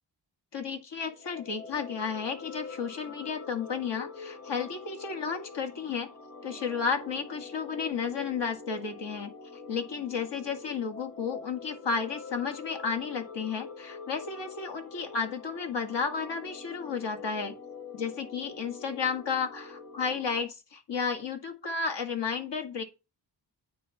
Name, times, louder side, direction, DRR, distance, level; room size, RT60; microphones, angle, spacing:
voice 1, 0.5-6.1 6.4-17.6 17.9-22.8, left 5 dB, 65° left, 2.0 m, -33 dB
sound 1, 1.1-20.4, left 4 dB, 30° left, 1.8 m, -45 dB
9.3 x 4.3 x 5.7 m
cardioid pair, 95°, 44 cm